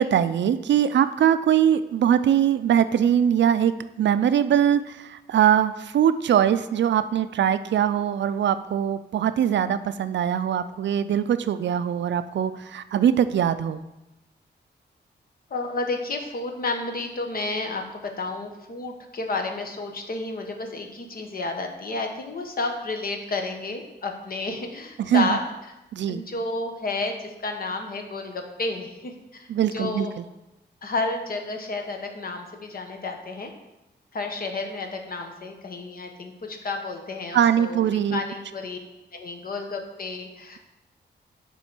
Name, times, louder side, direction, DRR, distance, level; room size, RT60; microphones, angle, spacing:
voice 1, 0.0-3.7 4.0-13.8 25.0-25.4 25.9-26.2 29.5-30.2 37.3-38.2, right 9 dB, 80° right, 12 dB, 0.4 m, -22 dB
voice 2, 15.5-25.4 26.1-30.1 30.8-33.5 34.1-38.8 39.1-40.6, left 3 dB, 50° left, 4 dB, 1.0 m, -31 dB
7.1 x 3.8 x 6.0 m, 0.95 s
wide cardioid pair, 125°, 19 cm